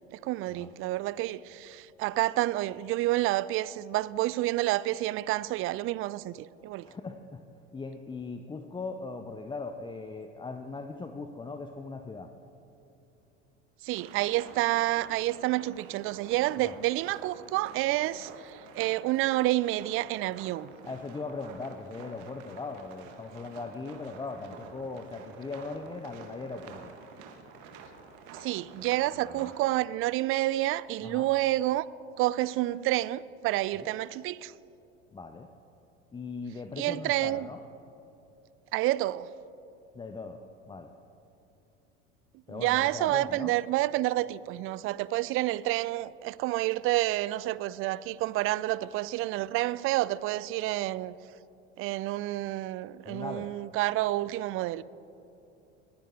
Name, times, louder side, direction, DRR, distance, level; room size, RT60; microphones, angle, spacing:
voice 1, 0.1-6.9 13.8-20.7 28.4-31.9 32.2-34.5 36.8-37.5 38.7-39.3 42.5-51.2 51.8-54.8, right 16 dB, 40° right, 0.4 m, -29 dB
voice 2, 6.8-7.4 7.7-12.3 16.6-16.7 20.8-26.9 29.2-29.5 31.0-31.3 33.8-33.9 35.1-35.5 36.1-37.6 39.9-40.9 42.5-43.5 53.0-53.5, left 3 dB, 15° left, 0.6 m, -39 dB
sound 1, 13.9-29.8, right 5 dB, 60° right, 1.6 m, -49 dB
20.5 x 10.0 x 3.7 m
hypercardioid pair, 80°, 35 cm